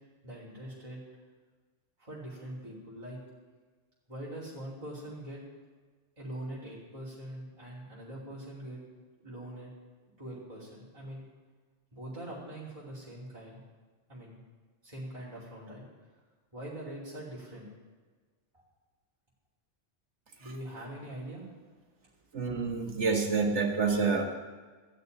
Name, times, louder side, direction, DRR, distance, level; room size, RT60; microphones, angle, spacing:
voice 1, 0.2-1.0 2.0-3.2 4.1-5.4 6.2-8.8 9.2-9.7 10.2-11.3 11.9-13.6 14.1-14.4 14.8-15.8 16.5-17.7 18.5-18.6 20.4-21.5, right 1 dB, 25° right, -8 dB, 3.0 m, -43 dB
voice 2, 22.3-24.2, right 4 dB, 70° right, 4 dB, 1.8 m, -28 dB
14.5 x 6.8 x 9.2 m, 1.4 s
omnidirectional pair, 1.2 m